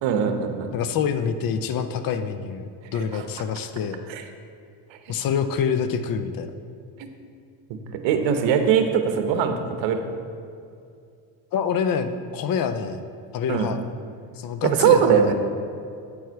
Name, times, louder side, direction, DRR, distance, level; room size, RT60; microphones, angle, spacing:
voice 1, 0.0-0.7 2.9-3.2 4.1-4.3 4.9-5.1 7.0-7.1 7.7-10.0 13.5-13.7 14.6-15.3, right 7 dB, 65° right, 6 dB, 1.0 m, -21 dB
voice 2, 0.7-4.0 5.1-6.5 11.5-13.0 13.3-13.8 14.4-15.3, left 7 dB, 45° left, 9 dB, 0.6 m, -26 dB
8.6 x 4.7 x 4.6 m, 2.4 s
cardioid pair, 105°, 48 cm